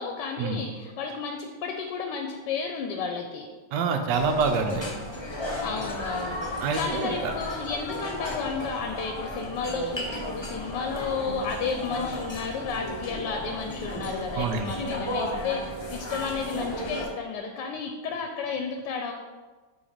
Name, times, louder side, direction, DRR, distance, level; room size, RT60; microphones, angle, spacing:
voice 1, 0.0-3.5 5.6-6.4 6.8-19.1, left 5 dB, 80° left, 4 dB, 1.2 m, -32 dB
voice 2, 3.7-4.9 6.6-7.1 14.4-14.7, right 5 dB, 80° right, 5 dB, 1.3 m, -26 dB
sound 1, 4.1-17.1, left 1 dB, 35° left, 0.4 m, -34 dB
6.2 x 3.1 x 5.0 m, 1.3 s
omnidirectional pair, 1.9 m